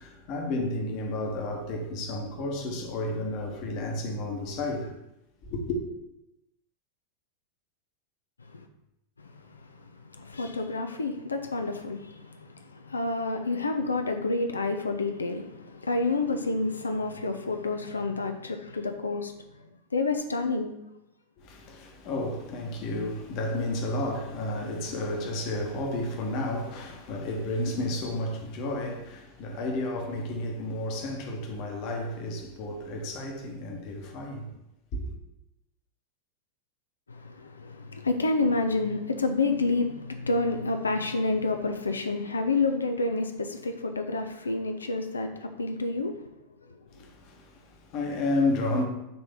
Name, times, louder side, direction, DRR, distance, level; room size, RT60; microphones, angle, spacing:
voice 1, 0.0-4.9 5.4-5.8 21.4-34.5 34.9-35.1 46.9-48.8, left 1 dB, 45° left, 1.2 m, -32 dB
voice 2, 10.0-19.4 19.9-20.7 37.1-46.2, left 3 dB, 75° left, 0.5 m, -29 dB
6.0 x 3.3 x 5.3 m
figure-of-eight pair, 90°, 0 cm